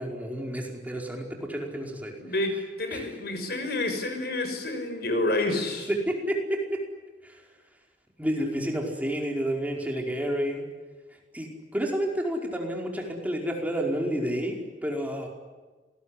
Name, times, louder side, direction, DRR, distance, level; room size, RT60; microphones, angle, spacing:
voice 1, 0.0-2.1 2.9-3.0 5.9-6.8 7.2-7.4 8.2-10.6 11.3-15.3, equal, 10° right, 0 dB, 4.9 m, -30 dB
voice 2, 2.8-5.9, left 2 dB, 60° left, 7 dB, 6.2 m, -28 dB
28.0 x 20.5 x 9.9 m, 1.3 s
head